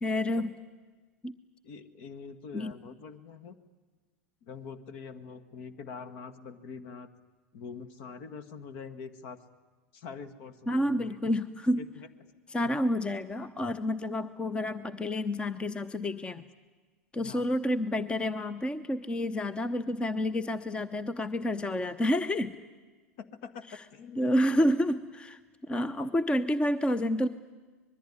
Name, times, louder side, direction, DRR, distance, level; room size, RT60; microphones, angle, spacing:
voice 1, 0.0-0.5 1.2-1.3 2.5-2.7 10.7-11.8 12.5-16.4 17.1-22.5 24.2-25.4 25.7-27.3, left 1 dB, 10° left, 16 dB, 0.8 m, -29 dB
voice 2, 1.6-3.6 4.4-7.1 7.5-9.4 9.9-11.2 11.7-12.3 12.6-12.7 17.2-17.5 23.2-24.7, left 5 dB, 55° left, 13 dB, 1.8 m, -44 dB
25.5 x 21.0 x 9.8 m, 1.3 s
figure-of-eight pair, 90°, 8 cm